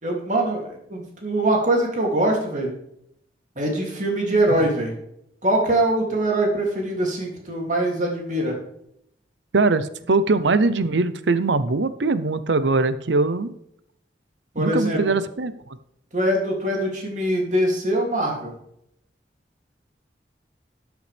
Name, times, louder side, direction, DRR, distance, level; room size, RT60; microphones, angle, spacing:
voice 1, 0.0-2.7 3.6-4.9 5.4-8.6 14.5-15.0 16.1-18.5, right 1 dB, 45° right, 0 dB, 2.8 m, -23 dB
voice 2, 9.5-13.5 14.6-15.5, right 3 dB, 85° right, 13 dB, 0.7 m, -21 dB
13.0 x 8.0 x 3.4 m, 0.74 s
head